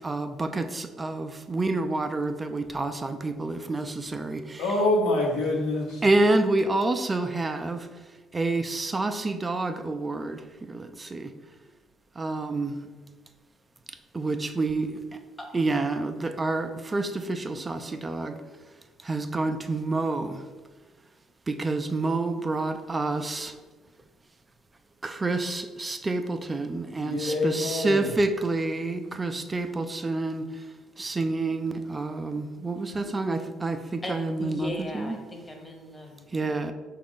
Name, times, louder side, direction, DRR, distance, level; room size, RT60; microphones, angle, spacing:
voice 1, 0.0-4.6 6.0-7.9 8.3-10.4 10.7-11.3 12.2-12.7 14.1-15.0 15.5-18.3 19.0-20.4 21.5-23.5 25.0-30.5 31.0-35.2 36.3-36.7, right 2 dB, 25° right, 8 dB, 0.3 m, -28 dB
voice 2, 4.6-6.0 27.0-28.1, left 2 dB, 80° left, -2 dB, 1.0 m, -26 dB
voice 3, 34.0-36.7, left 1 dB, 20° left, 2 dB, 0.9 m, -38 dB
4.9 x 2.4 x 3.6 m, 1.3 s
hypercardioid pair, 55°, 0 cm